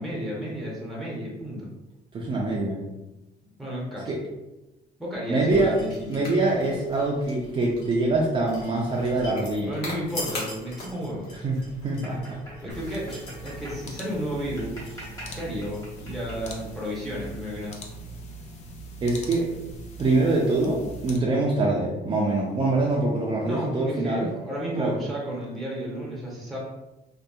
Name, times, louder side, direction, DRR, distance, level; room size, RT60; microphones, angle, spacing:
voice 1, 0.0-1.7 3.4-4.1 5.0-6.3 9.7-11.3 12.6-15.0 15.3-17.8 23.4-26.6, equal, ahead, -4 dB, 0.7 m, -32 dB
voice 2, 2.1-2.8 4.1-4.2 5.3-5.7 6.1-9.7 11.4-11.6 11.8-12.4 19.0-19.5 20.0-24.3 24.8-25.0, right 2 dB, 30° right, -2 dB, 0.4 m, -24 dB
sound 1, 5.5-16.6, left 1 dB, 85° left, 1.0 m, -42 dB
sound 2, 11.3-18.0, equal, 20° left, 1.4 m, -47 dB
sound 3, 12.7-21.2, right 1 dB, 40° left, 0.5 m, -41 dB
2.7 x 2.2 x 2.2 m, 0.98 s
cardioid pair, 110°, 17 cm